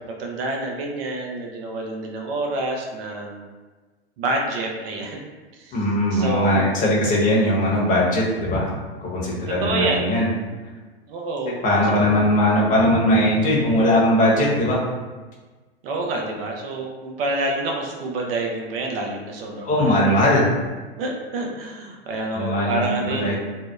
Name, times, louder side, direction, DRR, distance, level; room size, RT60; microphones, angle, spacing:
voice 1, 0.1-3.5 4.2-5.2 5.6-5.9 6.1-6.6 9.5-10.1 11.0-12.2 15.8-20.2 21.0-23.4, right 2 dB, 60° right, 0 dB, 0.6 m, -28 dB
voice 2, 5.7-8.7 9.0-10.3 11.6-14.8 19.6-20.5 22.3-23.4, left 1 dB, 25° left, -5 dB, 0.8 m, -19 dB
2.8 x 2.0 x 2.2 m, 1.3 s
hypercardioid pair, 105°, 32 cm